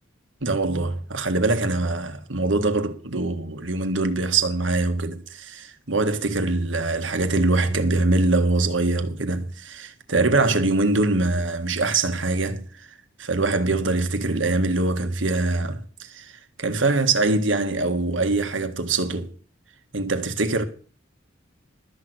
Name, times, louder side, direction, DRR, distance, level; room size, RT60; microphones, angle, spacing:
voice 1, 0.4-12.7 13.2-16.3 16.6-19.3 19.9-20.6, right 2 dB, 75° right, 1.7 m, -23 dB
13.0 x 6.4 x 8.0 m
head